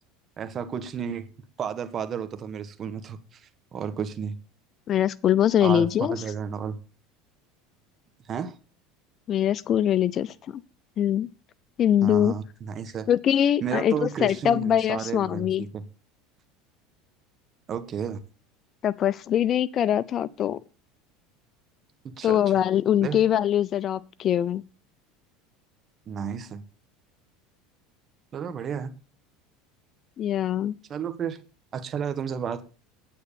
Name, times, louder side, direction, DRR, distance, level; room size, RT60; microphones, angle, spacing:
voice 1, 0.4-1.2 1.6-4.4 5.6-6.8 8.3-8.5 12.0-13.1 13.6-15.8 17.7-18.2 22.0-22.4 23.0-23.2 26.1-26.6 28.3-28.9 30.9-31.4 31.7-32.6, right 7 dB, 35° right, 1.7 m, -32 dB
voice 2, 4.9-6.2 9.3-10.6 11.0-11.3 11.8-12.3 13.1-15.6 18.8-20.6 22.2-24.6 30.2-30.7, left 10 dB, 40° left, 0.5 m, -23 dB
9.4 x 9.3 x 7.0 m
supercardioid pair, 125°, 0 cm